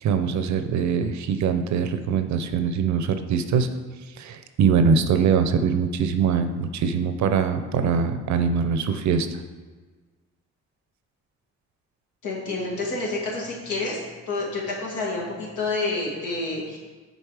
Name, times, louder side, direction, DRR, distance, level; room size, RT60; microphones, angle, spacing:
voice 1, 0.0-3.7 4.2-9.3, right 6 dB, 70° right, 9 dB, 0.6 m, -23 dB
voice 2, 12.2-14.0 14.3-16.8, left 3 dB, 80° left, -4 dB, 2.1 m, -28 dB
6.6 x 4.1 x 4.8 m, 1.4 s
cardioid pair, 90°, 30 cm